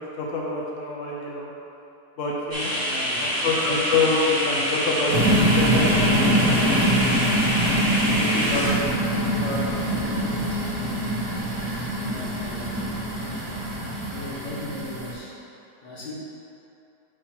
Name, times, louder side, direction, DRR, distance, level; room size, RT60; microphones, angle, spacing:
voice 1, 0.2-1.5 2.2-2.7 3.4-6.3 6.5-6.8 7.7-8.7 9.0-10.3, left 3 dB, 55° left, -3 dB, 1.0 m, -27 dB
sound 1, 2.5-8.7, equal, 15° right, 1.1 m, -26 dB
voice 2, 2.8-3.6 12.1-13.6 14.1-15.4 15.8-16.1, left 2 dB, 75° left, -9 dB, 2.3 m, -38 dB
sound 2, 5.1-15.1, equal, 80° right, 2.1 m, -24 dB
sound 3, 8.5-14.3, equal, 90° left, 2.4 m, -40 dB
7.8 x 3.0 x 5.8 m, 2.9 s
omnidirectional pair, 1.8 m